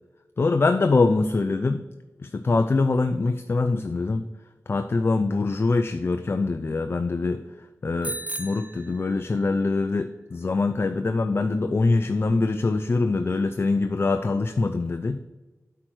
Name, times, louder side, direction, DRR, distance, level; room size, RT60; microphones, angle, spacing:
voice 1, 0.4-1.8 2.2-4.3 4.7-7.4 7.8-15.2, left 3 dB, 45° left, 8 dB, 0.4 m, -24 dB
Bicycle bell, 8.0-9.6, right 1 dB, 25° right, 0.8 m, -36 dB
8.5 x 4.6 x 6.2 m, 1.2 s
wide cardioid pair, 75°, 6 cm